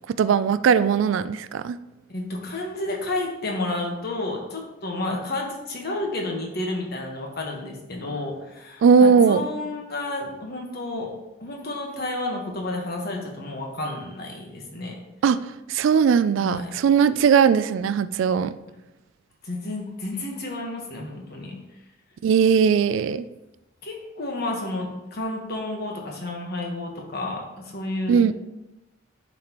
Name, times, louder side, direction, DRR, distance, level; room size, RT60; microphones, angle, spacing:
voice 1, 0.2-1.8 8.8-9.4 15.2-15.4 15.7-18.5 22.2-23.2 28.1-28.3, right 6 dB, 75° right, 14 dB, 0.3 m, -19 dB
voice 2, 2.1-11.1 11.4-15.0 16.4-16.8 17.1-17.2 19.4-21.5 23.8-28.3, left 2 dB, 55° left, 0 dB, 1.3 m, -31 dB
10.5 x 4.2 x 3.0 m, 0.98 s
head